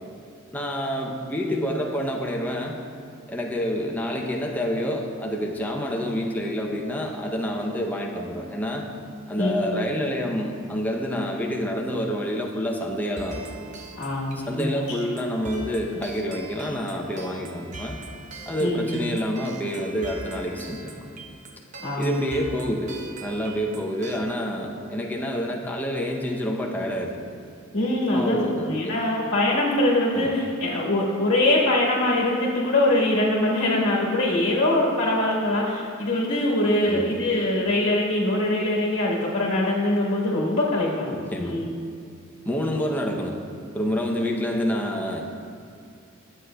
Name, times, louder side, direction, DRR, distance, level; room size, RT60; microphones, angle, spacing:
voice 1, 0.5-2.7 3.3-8.9 9.3-13.4 14.5-18.0 18.5-21.1 22.0-27.2 28.1-29.0 30.1-30.3 36.8-37.1 41.1-41.6 42.5-43.4 43.7-45.2, equal, 10° left, -1 dB, 0.6 m, -28 dB
sound 1, 13.2-24.2, right 3 dB, 35° right, 0.7 m, -42 dB
voice 2, 14.0-15.0 18.6-19.0 21.8-22.2 27.7-41.7, left 1 dB, 60° left, -5 dB, 1.3 m, -23 dB
11.5 x 7.8 x 2.2 m, 2.4 s
head